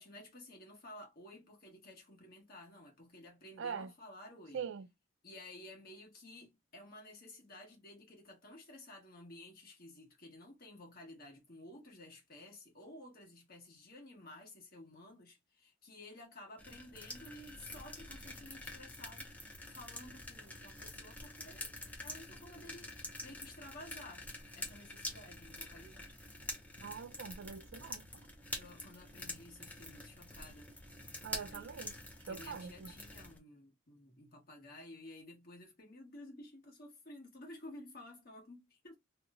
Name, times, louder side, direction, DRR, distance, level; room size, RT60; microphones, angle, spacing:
voice 1, 0.0-4.6 5.2-19.3 19.7-24.3 24.5-26.2 28.5-30.7 31.3-31.8 32.3-39.0, left 1 dB, 45° left, 1.2 m, -53 dB
voice 2, 3.6-3.9 4.5-4.9 26.8-28.1 31.2-31.9 32.3-32.9, right 6 dB, 60° right, 0.4 m, -43 dB
sound 1, 16.6-33.4, left 1 dB, 5° left, 0.5 m, -47 dB
2.9 x 2.1 x 3.5 m
head